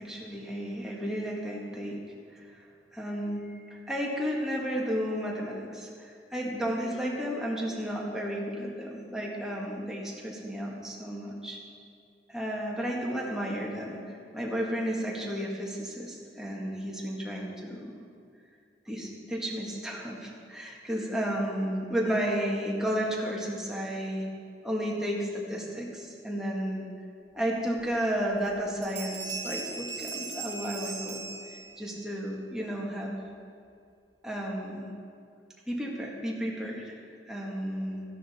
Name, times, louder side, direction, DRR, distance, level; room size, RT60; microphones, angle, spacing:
voice 1, 0.0-2.0 2.3-2.5 2.9-11.6 12.3-17.8 18.9-24.3 24.6-26.9 27.3-31.3 31.8-33.1 34.2-34.9 35.7-37.0 37.3-38.0, equal, 5° right, -3 dB, 1.6 m, -33 dB
sound 1, 27.8-27.9 28.3-28.6 28.8-32.0, right 4 dB, 40° right, 2.6 m, -38 dB
13.5 x 11.0 x 4.3 m, 2.3 s
head